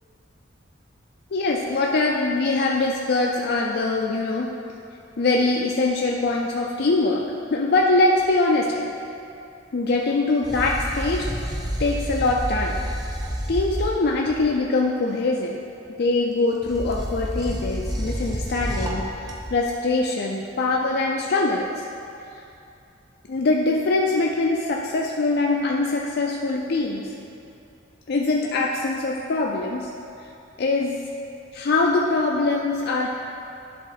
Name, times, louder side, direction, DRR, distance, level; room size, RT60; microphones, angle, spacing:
voice 1, 1.3-4.5 5.2-7.2 7.5-8.9 9.7-12.8 13.5-15.6 16.0-21.7 23.3-27.1 28.1-29.8 30.6-31.0 31.5-33.1, left 3 dB, 60° left, -1 dB, 0.4 m, -23 dB
sound 1, 10.4-14.6 16.6-19.7, equal, 20° right, 0.9 m, -29 dB
11.0 x 3.7 x 4.0 m, 2.6 s
head